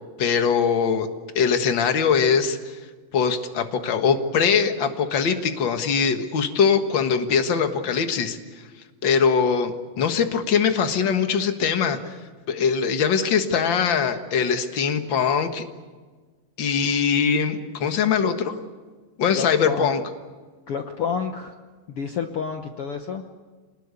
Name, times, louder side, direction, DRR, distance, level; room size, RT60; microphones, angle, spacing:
voice 1, 0.2-1.1 1.3-2.8 3.1-8.4 9.0-12.0 12.5-15.7 16.6-18.6 19.2-20.0, left 6 dB, 50° left, 7 dB, 1.6 m, -22 dB
voice 2, 19.4-20.0 20.7-21.5 21.9-23.2, left 6 dB, 70° left, 5 dB, 1.4 m, -29 dB
26.5 x 20.0 x 8.3 m, 1.4 s
omnidirectional pair, 4.1 m